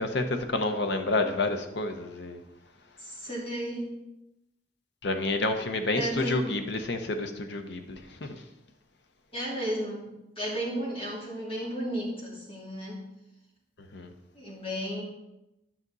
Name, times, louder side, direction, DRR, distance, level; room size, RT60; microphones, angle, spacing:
voice 1, 0.0-2.4 5.0-8.4 13.9-14.1, left 2 dB, 65° left, 7 dB, 0.9 m, -29 dB
voice 2, 3.0-3.8 6.0-6.3 9.3-10.1 10.4-13.0 14.3-15.0, right 1 dB, 30° left, -4 dB, 2.8 m, -33 dB
11.0 x 6.0 x 4.0 m, 0.93 s
head